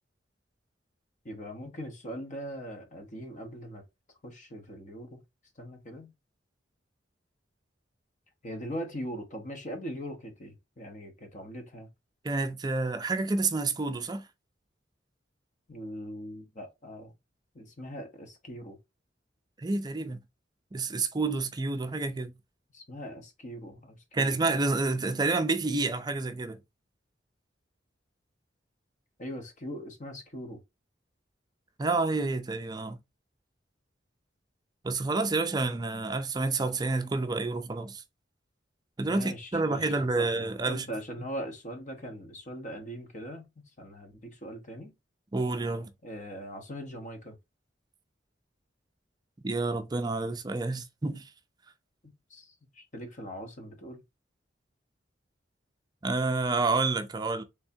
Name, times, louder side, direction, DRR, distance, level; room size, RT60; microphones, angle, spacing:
voice 1, 1.2-3.8 4.2-5.2 5.6-6.1 8.4-11.9 15.7-17.1 17.5-18.8 22.7-24.4 29.2-30.6 39.0-40.3 40.7-43.5 43.8-44.9 46.0-47.4 52.0-54.0, equal, 45° left, 0.9 m, -41 dB
voice 2, 12.2-14.3 19.6-20.2 20.7-22.3 24.1-26.6 31.8-33.0 34.8-38.0 39.0-40.9 45.3-45.9 49.4-51.3 56.0-57.4, right 3 dB, 20° right, 0.4 m, -29 dB
3.4 x 3.3 x 2.6 m
head